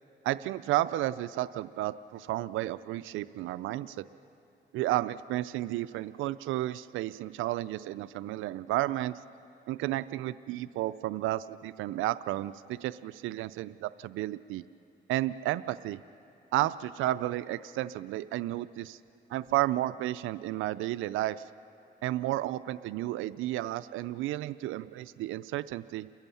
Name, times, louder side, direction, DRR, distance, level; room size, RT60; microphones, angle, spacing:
voice 1, 0.2-4.0 4.7-9.2 9.7-14.6 15.1-16.0 16.5-19.0 19.3-21.4 22.0-26.1, right 15 dB, 90° right, 15 dB, 0.4 m, -32 dB
30.0 x 14.5 x 7.0 m, 2.6 s
cardioid pair, 90°, 20 cm